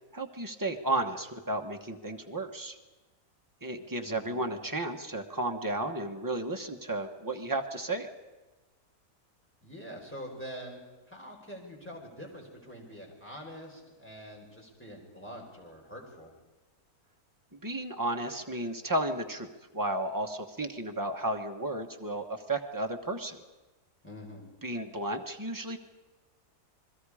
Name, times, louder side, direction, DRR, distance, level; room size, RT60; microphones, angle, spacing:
voice 1, 0.0-2.8 3.6-8.1 17.5-23.4 24.6-25.8, right 2 dB, 15° right, 3 dB, 1.1 m, -33 dB
voice 2, 4.0-4.5 9.6-10.8 11.1-16.3 24.0-24.5, equal, 5° left, -1 dB, 4.5 m, -45 dB
28.5 x 21.0 x 5.0 m, 1.2 s
omnidirectional pair, 1.6 m